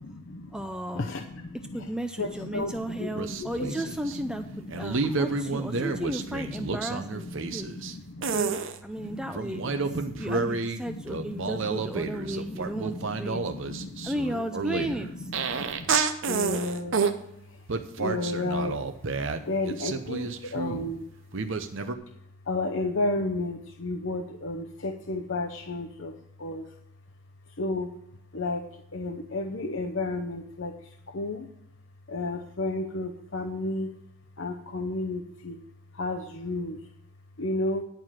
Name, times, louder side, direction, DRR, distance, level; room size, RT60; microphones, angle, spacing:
voice 1, 0.0-0.6 0.9-8.4 9.0-10.6 10.9-14.2 14.7-19.1 19.4-21.1 22.1-26.8 27.4-27.9 28.3-31.5 32.1-33.9 34.4-35.6 35.9-36.9 37.4-37.8, left 2 dB, 60° left, 3 dB, 0.7 m, -34 dB
voice 2, 0.5-1.1 1.7-7.7 8.3-13.4 14.0-15.3, right 1 dB, 5° right, 7 dB, 0.4 m, -34 dB
sound 1, 3.2-4.2 4.7-7.9 8.2-8.8 9.4-10.8 11.1-17.2 17.7-20.9 21.3-21.9, right 4 dB, 60° right, 0.7 m, -30 dB
10.5 x 4.8 x 7.4 m, 0.78 s
head